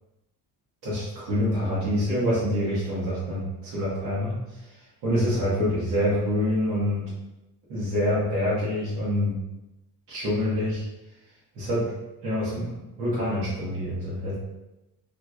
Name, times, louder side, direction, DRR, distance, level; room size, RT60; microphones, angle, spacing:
voice 1, 0.8-4.4 5.0-7.1 7.7-9.4 10.1-10.8 11.5-11.9 12.2-12.7 13.0-14.3, left 1 dB, 85° right, -10 dB, 1.4 m, -26 dB
3.3 x 3.0 x 2.4 m, 0.95 s
cardioid pair, 120°, 42 cm